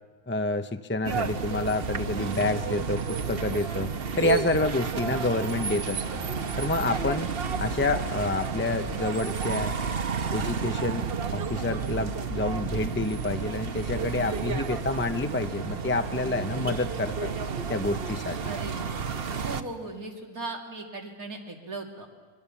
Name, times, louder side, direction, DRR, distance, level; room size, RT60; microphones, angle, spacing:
voice 1, 0.3-6.2 6.6-7.3 7.6-9.8 10.3-11.1 11.3-17.3 17.7-18.4, left 2 dB, 20° left, 8 dB, 0.3 m, -28 dB
sound 1, 1.0-19.6, right 5 dB, 45° right, 1.1 m, -31 dB
voice 2, 16.1-16.8 18.4-19.1 19.4-22.1, right 3 dB, 85° right, 1 dB, 3.3 m, -39 dB
25.0 x 23.0 x 7.1 m, 1.4 s
omnidirectional pair, 1.5 m